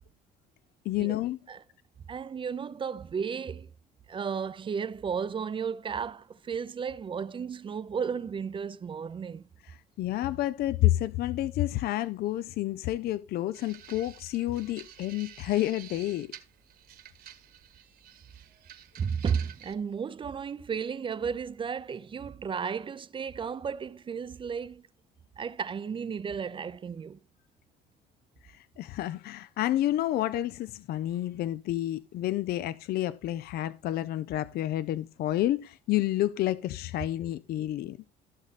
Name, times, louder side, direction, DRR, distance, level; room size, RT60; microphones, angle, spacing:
voice 1, 0.8-1.4 9.7-16.3 28.4-38.0, left 14 dB, 65° left, 0.5 m, -29 dB
voice 2, 2.1-3.7 4.1-9.4 19.0-24.9 25.4-27.2, right 6 dB, 30° right, 0.5 m, -34 dB
sound 1, 13.5-19.7, right 10 dB, 65° right, 1.6 m, -50 dB
14.5 x 6.5 x 4.1 m
cardioid pair, 110°, 17 cm